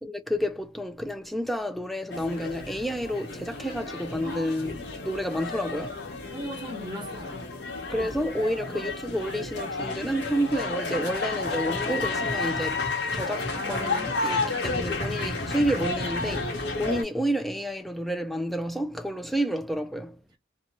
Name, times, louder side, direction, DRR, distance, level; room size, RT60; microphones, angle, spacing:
voice 1, 0.0-6.0 7.9-12.8 13.1-20.2, equal, ahead, 0.4 m, -30 dB
sound 1, 2.1-17.0, left 3 dB, 80° left, 1.0 m, -31 dB
voice 2, 4.2-4.6 6.3-7.4 13.5-14.6, equal, 25° right, 1.1 m, -39 dB
2.7 x 2.3 x 2.8 m
head